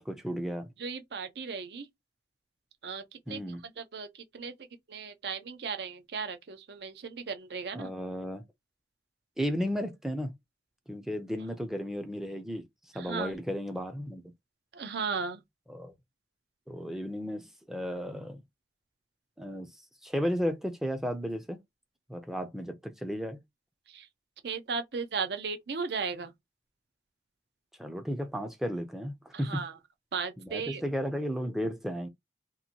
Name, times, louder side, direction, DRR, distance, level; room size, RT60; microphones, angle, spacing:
voice 1, 0.0-0.7 3.3-3.6 7.7-8.4 9.4-10.3 10.9-12.6 12.9-14.2 15.7-15.9 16.7-18.4 19.4-19.7 20.0-21.6 22.1-23.4 27.8-29.6 30.4-32.1, equal, ahead, 0.4 m, -34 dB
voice 2, 0.8-1.9 2.8-7.9 12.9-13.3 14.7-15.4 23.9-24.1 24.4-26.3 29.3-29.8 30.1-30.8, right 5 dB, 70° right, 0.6 m, -36 dB
2.8 x 2.5 x 2.7 m
head